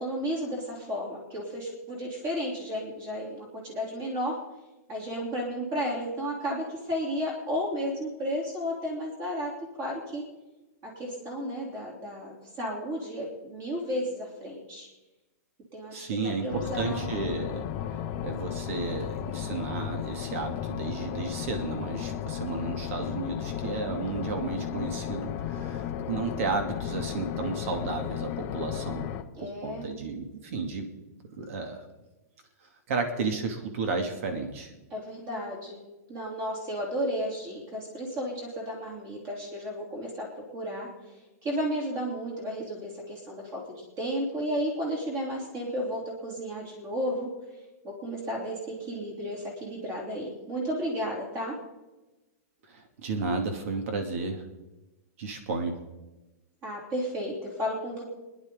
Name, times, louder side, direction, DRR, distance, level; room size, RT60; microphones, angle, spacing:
voice 1, 0.0-4.4 4.9-9.5 9.8-10.2 10.8-14.9 15.7-17.1 29.4-29.9 34.9-35.8 36.1-47.3 47.8-51.5 56.6-58.0, equal, 25° right, -2 dB, 3.4 m, -33 dB
voice 2, 15.9-17.6 18.2-29.1 29.4-30.9 31.4-31.8 32.9-34.7 52.7-54.4 55.2-55.8, right 4 dB, 55° right, 5 dB, 2.5 m, -33 dB
sound 1, 16.5-29.2, left 10 dB, 30° left, 0.8 m, -34 dB
30.0 x 10.5 x 3.9 m, 1.1 s
supercardioid pair, 165°, 9 cm